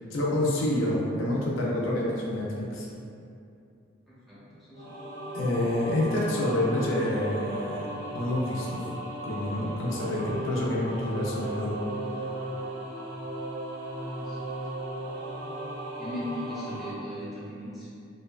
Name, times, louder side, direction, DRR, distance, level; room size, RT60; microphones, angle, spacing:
voice 1, 0.1-2.9 5.3-7.9 8.1-8.8 9.2-11.8, left 1 dB, 80° left, -4 dB, 0.4 m, -28 dB
voice 2, 4.1-4.4 4.7-5.0 14.1-14.5 16.0-17.9, equal, ahead, -11 dB, 0.6 m, -38 dB
sound 1, 4.7-16.9, right 1 dB, 65° right, 0.5 m, -36 dB
2.6 x 2.2 x 2.3 m, 2.5 s
head